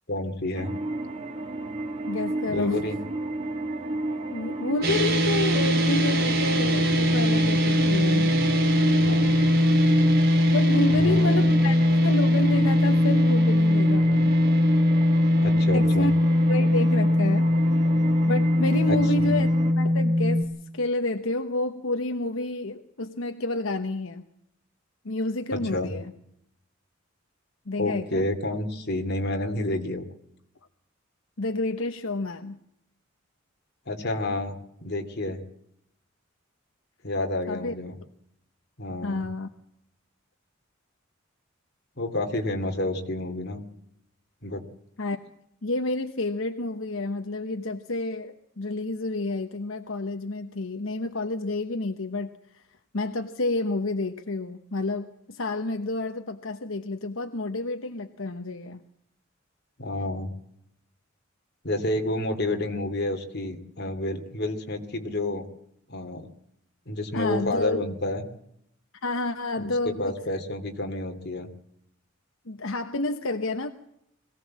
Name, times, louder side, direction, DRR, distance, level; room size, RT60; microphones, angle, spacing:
voice 1, 0.1-0.8 2.5-3.0 9.0-9.4 10.9-11.5 15.4-16.1 18.9-19.3 25.5-25.9 27.8-30.1 33.9-35.4 37.0-37.9 38.8-39.3 42.0-43.6 44.4-44.6 59.8-60.3 61.6-65.5 65.9-66.3 66.9-68.2 69.6-71.5, left 1 dB, 55° left, 5 dB, 2.6 m, -30 dB
sound 1, 0.5-19.7, right 2 dB, 30° right, 2.1 m, -32 dB
voice 2, 2.1-2.8 4.3-8.3 10.5-14.3 15.7-16.1 16.5-17.5 18.3-19.5 19.8-24.2 25.0-26.1 27.7-28.3 31.4-32.6 37.5-37.7 39.0-39.5 45.0-45.2 45.6-52.6 52.9-58.8 67.1-67.8 69.0-70.4 72.5-73.7, left 2 dB, 80° left, 7 dB, 1.1 m, -29 dB
sound 2, 4.8-20.4, left 1 dB, 50° right, 2.5 m, -21 dB
22.0 x 17.0 x 7.5 m, 0.75 s
head